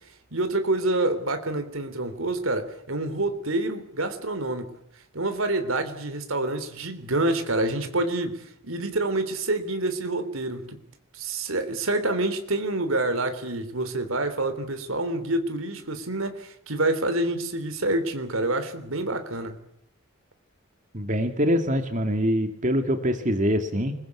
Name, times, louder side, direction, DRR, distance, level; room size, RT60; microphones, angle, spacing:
voice 1, 0.3-4.8 5.1-10.8 11.1-19.6, right 2 dB, 80° right, 3.5 m, -27 dB
voice 2, 20.9-23.9, equal, 40° right, 2.5 m, -24 dB
28.5 x 21.5 x 8.5 m
head